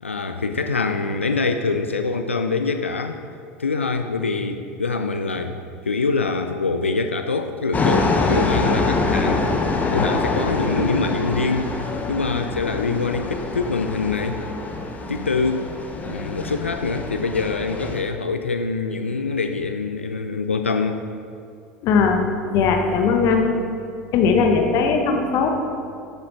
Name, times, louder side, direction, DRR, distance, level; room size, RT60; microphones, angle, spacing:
voice 1, 0.0-3.2 3.6-5.6 5.9-9.4 9.9-11.7 12.1-14.4 15.1-15.7 16.1-21.0 22.2-22.3, left 4 dB, 85° left, 7 dB, 0.4 m, -24 dB
sound 1, 7.7-18.0, left 3 dB, 25° left, 1.0 m, -25 dB
voice 2, 21.8-22.2 22.5-23.4 24.1-25.5, left 5 dB, 50° left, 3 dB, 1.2 m, -18 dB
14.0 x 7.6 x 3.2 m, 2.4 s
figure-of-eight pair, 75°, 7 cm